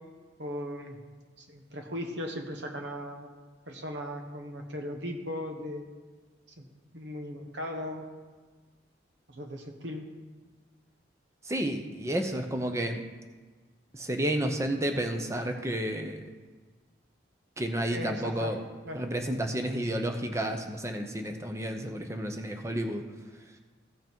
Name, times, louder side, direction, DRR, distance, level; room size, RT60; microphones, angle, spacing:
voice 1, 0.4-1.0 1.4-3.3 3.7-5.8 6.6-6.7 6.9-8.0 9.3-10.0 17.9-18.5 18.8-19.0, equal, 70° right, 4 dB, 1.2 m, -37 dB
voice 2, 11.4-13.0 13.9-16.2 17.6-18.6 18.9-23.0, right 1 dB, 15° right, 5 dB, 0.8 m, -31 dB
15.0 x 5.8 x 4.6 m, 1.4 s
head